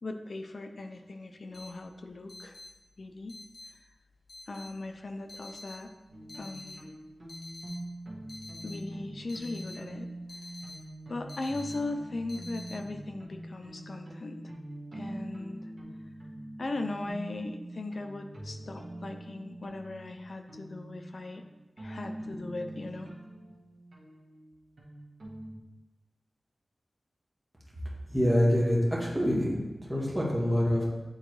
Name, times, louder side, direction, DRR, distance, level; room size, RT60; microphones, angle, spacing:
voice 1, 0.0-2.6 3.0-3.4 4.5-5.9 6.4-6.9 8.6-10.1 11.1-14.4 14.9-15.6 16.6-21.4 21.8-23.1, left 2 dB, 55° left, 6 dB, 0.5 m, -38 dB
sound 1, 1.5-12.7, left 2 dB, 80° left, 1.1 m, -48 dB
sound 2, 6.1-25.6, right 1 dB, 60° right, 1.7 m, -44 dB
voice 2, 28.1-30.8, equal, 10° right, -4 dB, 1.6 m, -26 dB
8.8 x 3.8 x 3.1 m, 1.1 s
wide cardioid pair, 95°, 0 cm